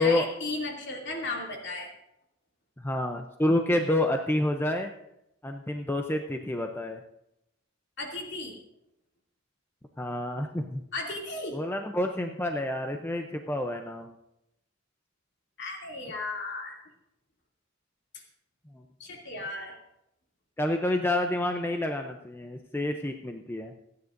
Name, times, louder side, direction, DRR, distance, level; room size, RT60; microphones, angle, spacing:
voice 1, 0.0-1.9 8.0-8.6 10.9-11.6 15.6-16.8 18.1-18.2 19.0-19.8, left 2 dB, 55° left, 0 dB, 2.7 m, -35 dB
voice 2, 2.8-4.9 5.4-7.0 10.0-10.8 11.5-14.1 20.6-23.7, left 1 dB, 10° left, 4 dB, 0.6 m, -28 dB
28.0 x 9.6 x 2.6 m, 0.84 s
head